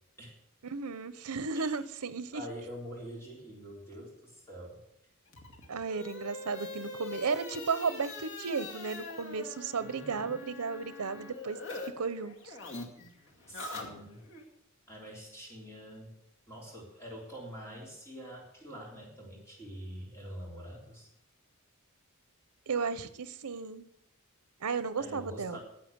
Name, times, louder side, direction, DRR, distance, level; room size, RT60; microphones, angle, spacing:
voice 1, 0.6-2.4 5.7-11.6 11.8-12.5 22.7-23.9 24.6-25.6, right 5 dB, 85° right, 15 dB, 0.8 m, -34 dB
voice 2, 2.3-4.8 9.8-10.4 13.5-14.2 14.9-16.2 16.5-21.1 25.0-25.6, equal, 10° left, -2 dB, 3.6 m, -45 dB
sound 1, 5.3-11.9 12.2-14.4, left 3 dB, 55° left, 2.3 m, -43 dB
10.5 x 7.8 x 7.9 m, 0.79 s
head